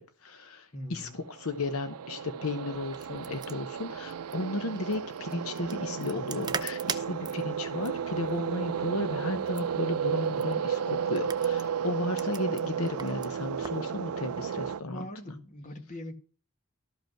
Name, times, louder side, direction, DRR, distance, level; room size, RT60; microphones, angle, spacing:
voice 1, 0.0-15.1, left 2 dB, 70° left, 1.0 m, -34 dB
voice 2, 0.7-1.2 14.9-16.2, left 1 dB, 35° left, 1.7 m, -41 dB
sound 1, 1.3-14.8, right 7 dB, 90° right, 0.5 m, -33 dB
sound 2, 2.7-13.9, right 5 dB, 20° right, 0.7 m, -43 dB
13.0 x 5.4 x 5.9 m
head